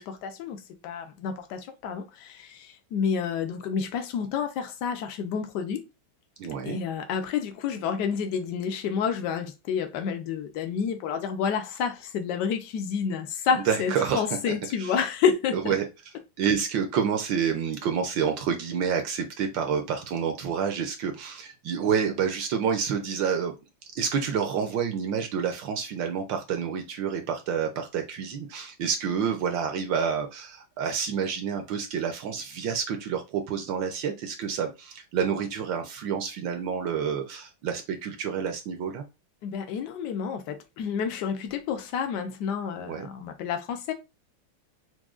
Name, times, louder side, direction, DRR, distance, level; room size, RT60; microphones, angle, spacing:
voice 1, 0.0-5.8 6.6-15.7 39.4-43.9, left 6 dB, 65° left, 1.1 m, -29 dB
voice 2, 6.4-6.8 13.7-14.2 14.8-14.9 15.7-15.8 16.4-23.5 23.9-39.0 42.9-43.1, right 7 dB, 70° right, 1.3 m, -28 dB
6.1 x 2.3 x 2.4 m
omnidirectional pair, 2.4 m